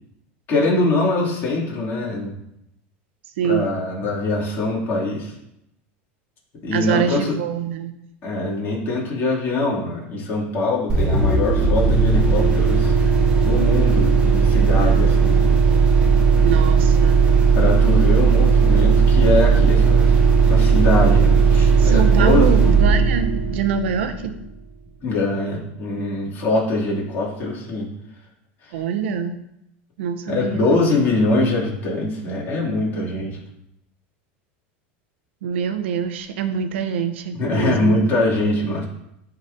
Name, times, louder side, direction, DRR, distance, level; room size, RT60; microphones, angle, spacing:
voice 1, 0.5-2.3 3.4-5.3 6.6-7.4 8.2-12.9 13.3-15.5 17.5-22.5 25.0-27.9 28.6-28.8 30.3-33.4 37.3-38.9, left 2 dB, 40° left, -4 dB, 2.6 m, -23 dB
voice 2, 3.4-3.7 6.7-7.9 16.4-17.3 21.8-24.3 28.7-29.4 30.0-30.6 35.4-38.0, right 7 dB, 90° right, 8 dB, 0.7 m, -24 dB
sound 1, 10.9-24.4, right 5 dB, 15° right, 0.9 m, -16 dB
11.0 x 4.0 x 2.7 m, 0.81 s
supercardioid pair, 130°, 6 cm